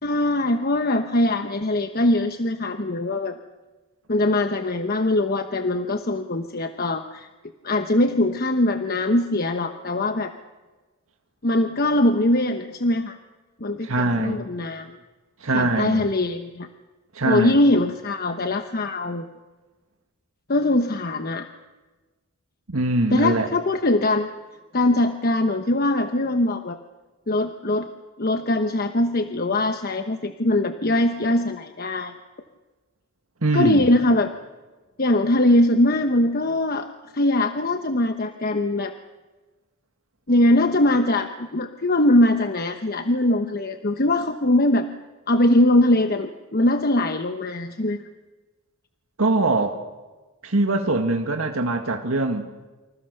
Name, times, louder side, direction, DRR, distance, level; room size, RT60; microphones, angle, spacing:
voice 1, 0.0-3.3 4.1-7.3 7.6-10.3 11.4-13.2 13.6-15.0 15.5-16.7 17.2-19.3 20.5-21.5 23.1-24.3 24.7-26.8 27.3-27.9 28.2-32.1 33.5-34.3 35.0-36.9 37.1-38.9 40.3-44.9 45.3-48.0, left 1 dB, 45° left, 7 dB, 1.1 m, -21 dB
voice 2, 13.8-14.4 15.4-16.0 17.1-17.6 22.7-23.5 33.4-33.9 49.2-49.8 50.4-52.5, right 2 dB, 85° right, 4 dB, 1.8 m, -22 dB
28.5 x 26.0 x 6.7 m, 1.2 s
head